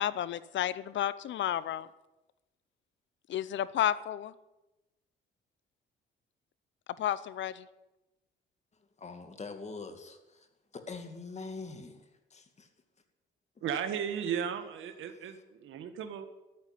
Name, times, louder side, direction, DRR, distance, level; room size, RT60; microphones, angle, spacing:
voice 1, 0.0-1.9 3.3-4.3 7.0-7.6, left 11 dB, 70° left, 17 dB, 0.7 m, -31 dB
voice 2, 9.0-10.5 10.7-12.7 15.1-15.4, left 4 dB, 35° left, 7 dB, 2.3 m, -44 dB
voice 3, 13.6-16.2, right 8 dB, 80° right, 8 dB, 1.8 m, -35 dB
12.5 x 9.7 x 9.8 m, 1.0 s
cardioid pair, 90°, 20 cm